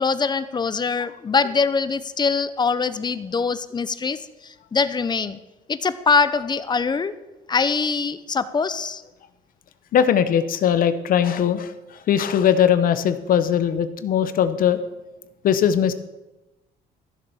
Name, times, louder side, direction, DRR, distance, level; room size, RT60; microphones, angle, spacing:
voice 1, 0.0-4.2 4.7-5.4 5.7-7.1 7.5-9.0, left 5 dB, 25° left, 14 dB, 0.7 m, -23 dB
voice 2, 9.9-11.7 12.1-14.8 15.4-15.9, left 9 dB, 55° left, 12 dB, 0.9 m, -19 dB
14.0 x 7.0 x 7.0 m, 1.0 s
cardioid pair, 110°, 17 cm